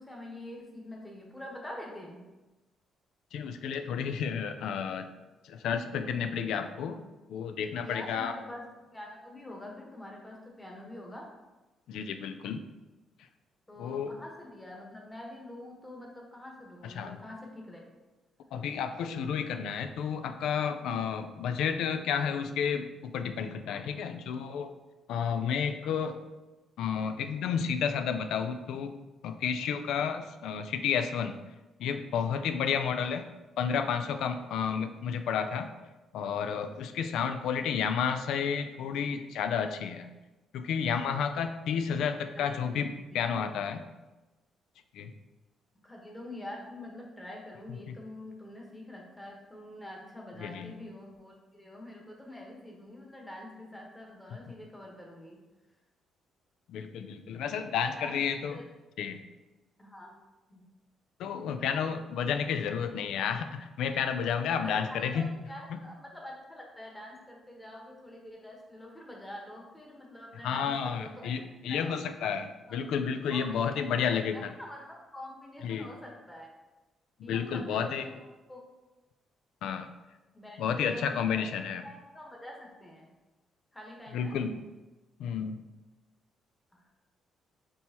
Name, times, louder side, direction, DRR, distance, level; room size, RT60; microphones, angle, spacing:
voice 1, 0.0-2.2 7.8-8.7 8.9-11.3 13.7-17.9 42.3-43.3 45.8-55.4 58.0-58.2 58.5-58.6 59.8-60.1 60.5-60.6 64.6-71.3 71.7-72.0 72.7-72.8 73.3-74.0 74.3-76.5 77.2-78.1 78.5-78.6 80.3-81.4 81.8-83.1 83.7-84.4 86.7-86.8, left 1 dB, 10° left, -1 dB, 1.1 m, -45 dB
voice 2, 3.3-5.1 5.4-7.0 7.3-8.3 11.9-12.6 13.8-14.1 16.8-17.2 18.5-24.7 25.1-26.2 26.8-28.9 29.2-31.4 31.8-33.2 33.6-35.7 36.1-40.1 40.5-43.8 44.9-45.1 47.9-48.0 50.4-50.8 56.7-58.6 59.0-59.2 61.2-65.3 65.7-65.8 70.4-74.5 75.6-75.9 77.3-78.1 79.6-79.9 80.6-81.8 84.1-84.6 85.2-85.6, left 7 dB, 80° left, 8 dB, 0.3 m, -31 dB
5.3 x 3.0 x 2.8 m, 1.1 s
cardioid pair, 90°, 0 cm